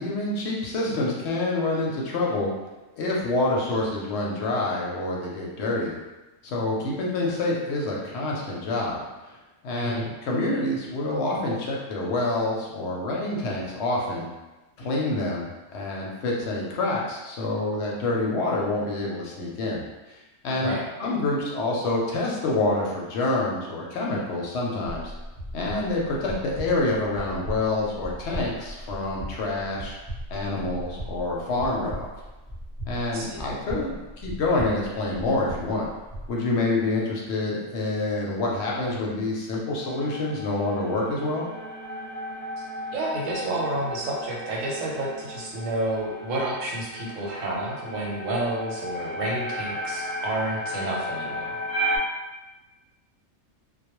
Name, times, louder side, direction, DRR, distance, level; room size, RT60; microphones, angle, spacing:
voice 1, 0.0-2.5 3.0-6.0 6.4-9.4 9.6-14.3 14.8-19.8 20.1-20.2 20.4-25.1 25.5-29.9 30.3-32.1 32.9-35.9 36.3-41.4, left 2 dB, 70° left, -3 dB, 0.8 m, -27 dB
voice 2, 9.8-10.1 20.6-20.8 33.1-33.4 42.6-42.7 42.9-51.6, right 1 dB, 85° right, -3 dB, 1.0 m, -30 dB
sound 1, 24.8-36.3, equal, 5° left, 0.8 m, -38 dB
sound 2, 39.8-52.0, equal, 55° right, 0.8 m, -34 dB
2.3 x 2.1 x 2.9 m, 1.1 s
omnidirectional pair, 1.3 m